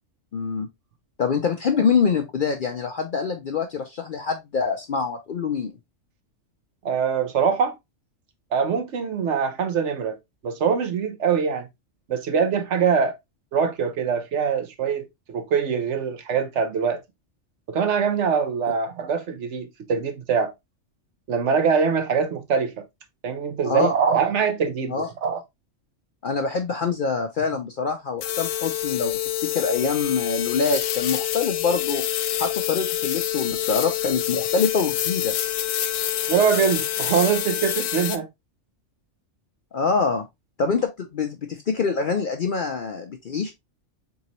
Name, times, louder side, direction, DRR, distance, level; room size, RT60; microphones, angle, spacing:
voice 1, 0.3-0.7 1.2-5.7 23.6-24.0 24.9-25.1 26.2-32.0 32.4-35.4 39.7-40.2 40.6-43.5, left 5 dB, 55° left, 0.6 m, -25 dB
voice 2, 6.8-7.8 8.5-10.2 10.4-11.7 12.1-13.2 13.5-17.0 17.7-20.5 21.3-22.8 23.2-25.4 36.3-38.3, right 6 dB, 65° right, 1.1 m, -23 dB
sound 1, 28.2-38.2, left 12 dB, 85° left, 1.0 m, -27 dB
3.9 x 3.6 x 3.0 m
omnidirectional pair, 1.3 m